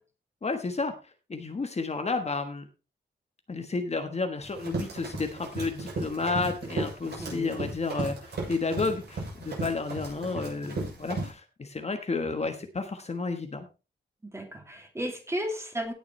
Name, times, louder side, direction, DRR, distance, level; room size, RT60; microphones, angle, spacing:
voice 1, 0.4-0.9 1.3-2.7 3.5-13.7, left 3 dB, 35° left, 6 dB, 1.4 m, -31 dB
Run, 4.4-11.3, right 3 dB, 65° right, 7.3 m, -35 dB
voice 2, 7.2-7.5 14.2-15.9, equal, 15° right, 3 dB, 2.8 m, -34 dB
17.5 x 7.1 x 3.2 m, 0.31 s
wide cardioid pair, 110°, 18 cm